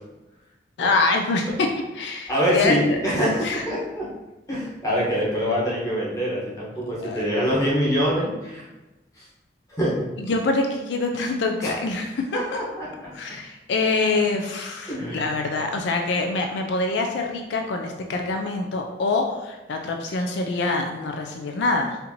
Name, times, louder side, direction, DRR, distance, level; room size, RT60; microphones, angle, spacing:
voice 1, 0.8-1.7 1.9-3.0 3.4-3.6 7.0-7.2 10.2-12.4 13.1-22.0, left 3 dB, 75° left, 3 dB, 0.4 m, -25 dB
voice 2, 2.3-4.1 4.5-8.7 9.2-9.3 9.7-10.1 11.6-11.7 12.3-13.1 14.9-15.3, equal, 20° left, -6 dB, 1.0 m, -24 dB
4.2 x 2.6 x 2.8 m, 1.0 s
head